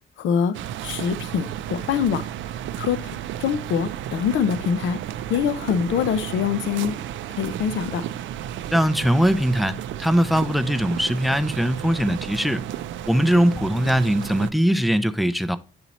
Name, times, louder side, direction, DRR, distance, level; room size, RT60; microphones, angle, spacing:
voice 1, 0.2-0.5 0.8-2.3 2.8-5.0 5.3-7.0 7.3-8.0, left 7 dB, 75° left, 0.6 m, -24 dB
sound 1, 0.5-14.5, right 11 dB, 70° right, 0.4 m, -33 dB
voice 2, 8.7-12.6 13.1-15.6, equal, ahead, 0.4 m, -21 dB
8.5 x 2.9 x 4.1 m
cardioid pair, 90°, 20 cm